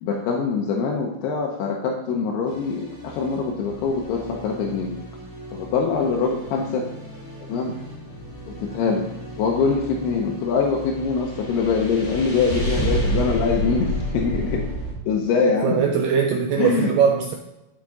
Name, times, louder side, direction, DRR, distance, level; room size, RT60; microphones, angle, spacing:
voice 1, 0.0-5.0 5.5-6.9 7.5-7.8 8.5-9.1 9.4-14.7 15.1-15.8 16.6-16.9, left 5 dB, 85° left, 0 dB, 2.9 m, -23 dB
sound 1, 2.5-14.9, right 1 dB, 25° left, 1.5 m, -31 dB
voice 2, 15.6-17.4, right 7 dB, 85° right, 2 dB, 2.0 m, -20 dB
12.0 x 4.7 x 3.8 m, 0.96 s
omnidirectional pair, 4.6 m